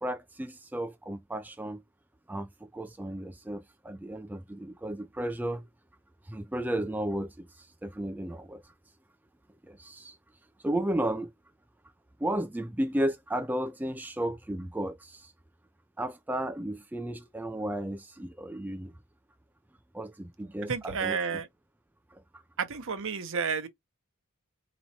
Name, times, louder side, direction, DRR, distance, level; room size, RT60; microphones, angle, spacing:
voice 1, 0.0-1.8 2.3-5.7 6.3-8.7 9.6-10.2 10.6-11.3 12.2-15.3 16.0-18.9 19.9-21.2 22.1-22.2, right 1 dB, 10° right, 0.3 m, -34 dB
voice 2, 20.6-21.5 22.6-23.7, right 6 dB, 60° right, 0.8 m, -31 dB
4.4 x 3.0 x 2.8 m
head